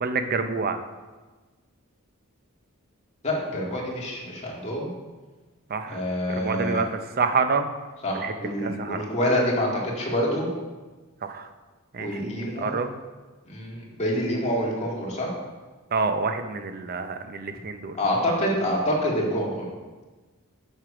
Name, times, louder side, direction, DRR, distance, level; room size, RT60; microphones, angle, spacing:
voice 1, 0.0-0.8 5.7-6.0 6.4-6.9 7.2-7.7 8.2-9.0 11.2-11.5 11.9-12.9 15.9-18.0, right 4 dB, 45° right, 8 dB, 0.6 m, -27 dB
voice 2, 3.2-4.9 5.9-6.8 8.0-10.5 12.0-12.7 13.5-15.3 18.0-19.7, equal, 30° left, -3 dB, 2.0 m, -26 dB
7.7 x 6.6 x 4.9 m, 1.3 s
head